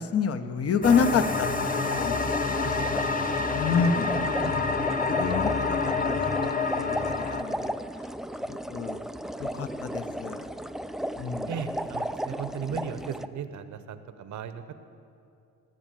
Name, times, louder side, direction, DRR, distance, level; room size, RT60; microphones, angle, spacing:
voice 1, 0.0-2.1 2.5-3.1 3.5-4.1 4.7-5.8 6.1-6.3 7.0-7.7 8.5-9.0 9.4-10.4 11.2-11.5, left 5 dB, 50° left, 9 dB, 1.0 m, -28 dB
sound 1, 0.8-7.4, left 4 dB, 30° left, 1.1 m, -27 dB
sound 2, 1.7-13.3, equal, ahead, 0.4 m, -35 dB
voice 2, 4.2-4.6 11.5-14.7, right 7 dB, 70° right, 11 dB, 1.0 m, -36 dB
19.0 x 7.4 x 9.1 m, 2.6 s
cardioid pair, 90°, 30 cm